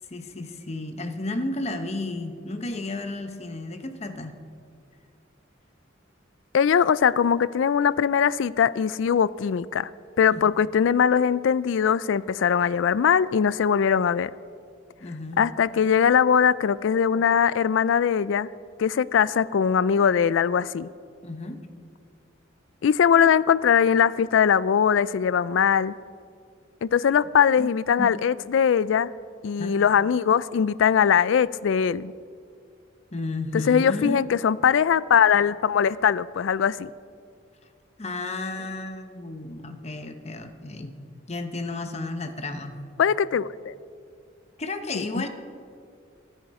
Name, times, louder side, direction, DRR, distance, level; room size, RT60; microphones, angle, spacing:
voice 1, 0.1-4.3 10.3-10.6 15.0-15.5 21.2-21.6 27.6-28.3 29.6-29.8 33.1-34.2 38.0-40.9 41.3-42.8 44.6-45.3, left 2 dB, 35° left, 7 dB, 1.0 m, -32 dB
voice 2, 6.5-9.9 10.2-14.3 15.4-18.5 18.8-20.9 22.8-25.9 26.8-29.1 29.4-32.1 33.5-36.9 43.0-43.7 44.9-45.3, left 7 dB, 75° left, 19 dB, 0.3 m, -21 dB
23.5 x 9.1 x 4.8 m, 2.2 s
head